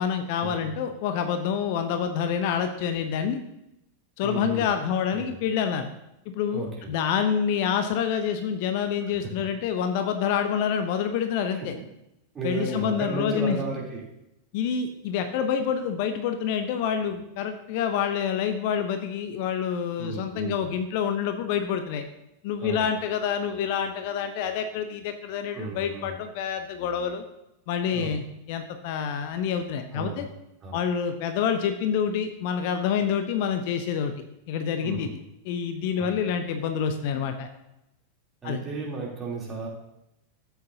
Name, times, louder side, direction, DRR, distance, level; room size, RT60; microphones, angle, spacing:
voice 1, 0.0-3.4 4.2-5.9 6.3-11.7 12.4-13.6 14.5-22.0 22.4-27.2 27.7-30.3 30.7-34.1 34.5-35.1 35.4-37.5 38.4-38.6, left 7 dB, 50° left, 8 dB, 0.7 m, -27 dB
voice 2, 4.2-4.7 5.1-5.4 6.5-6.9 9.0-9.1 11.4-11.9 12.3-14.0 20.0-20.6 22.6-22.9 25.5-26.1 27.9-28.1 29.9-30.3 30.6-30.8 34.8-35.1 36.0-36.1 38.4-39.7, right 3 dB, 20° right, -3 dB, 3.3 m, -34 dB
13.0 x 8.1 x 2.8 m, 0.86 s
figure-of-eight pair, 90°, 0 cm